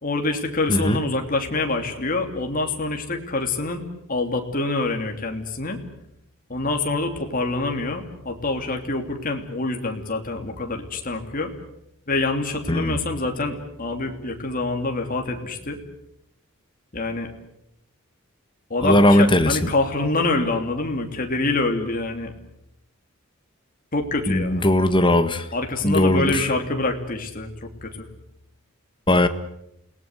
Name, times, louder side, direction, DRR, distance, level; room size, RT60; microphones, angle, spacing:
voice 1, 0.0-3.8 4.1-5.8 6.5-11.5 12.1-15.8 16.9-17.3 18.7-22.3 23.9-24.7 25.5-28.1, left 2 dB, 40° left, 3 dB, 3.1 m, -26 dB
voice 2, 18.8-19.6 24.3-25.4 25.8-26.5 29.1-29.3, left 1 dB, 20° left, 9 dB, 1.6 m, -18 dB
29.0 x 19.0 x 7.9 m, 0.80 s
head